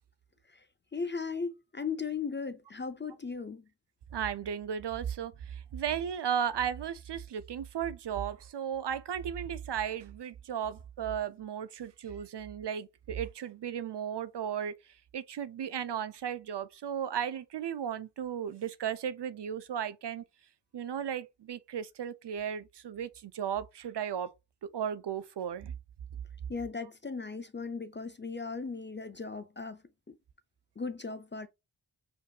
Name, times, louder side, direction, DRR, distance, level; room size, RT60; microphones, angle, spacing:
voice 1, 0.9-3.6 26.5-29.8 30.1-30.2 30.8-31.5, left 5 dB, 25° left, 0.4 m, -37 dB
voice 2, 4.1-14.8 15.1-20.2 20.7-24.3 24.6-25.7, right 8 dB, 60° right, 0.5 m, -35 dB
5.1 x 2.6 x 2.3 m
cardioid pair, 45°, 47 cm